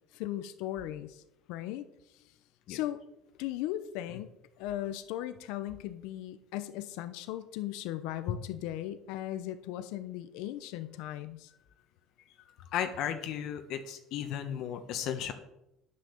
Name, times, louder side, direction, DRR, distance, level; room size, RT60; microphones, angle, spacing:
voice 1, 0.1-1.2 1.5-1.9 2.7-3.0 3.4-4.3 4.6-11.5, left 13 dB, 80° left, 11 dB, 0.7 m, -37 dB
voice 2, 12.7-15.3, left 9 dB, 60° left, 7 dB, 1.2 m, -34 dB
9.6 x 6.5 x 7.1 m, 0.87 s
cardioid pair, 125°, 0 cm